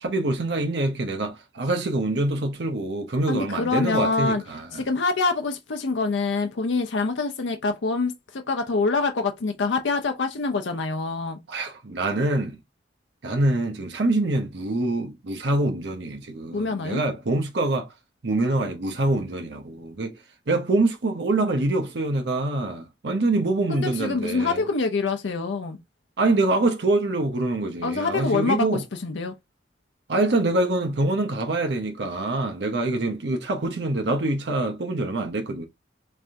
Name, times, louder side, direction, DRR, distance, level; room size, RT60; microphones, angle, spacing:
voice 1, 0.0-4.9 11.5-12.6 13.2-17.9 18.2-20.1 20.5-24.6 26.2-28.8 30.1-35.7, right 2 dB, 70° right, 0.7 m, -25 dB
voice 2, 3.3-4.4 4.7-11.4 16.5-17.0 23.7-25.8 27.8-28.7 29.0-29.3, left 4 dB, 85° left, 0.6 m, -25 dB
3.4 x 3.4 x 2.5 m
head